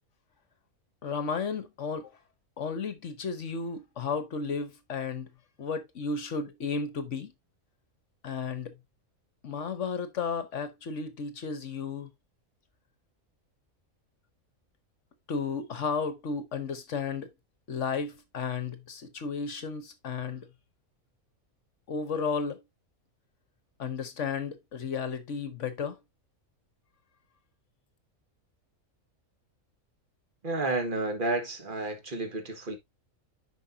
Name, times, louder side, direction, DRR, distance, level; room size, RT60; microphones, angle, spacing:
voice 1, 1.0-2.1 2.6-5.3 5.6-7.3 8.2-8.7 9.4-12.1 15.3-17.3 17.7-20.5 21.9-22.6 23.8-26.0, left 5 dB, 60° left, 1.2 m, -33 dB
voice 2, 30.4-32.8, right 2 dB, 35° right, 1.7 m, -31 dB
9.7 x 5.5 x 2.7 m
omnidirectional pair, 1.5 m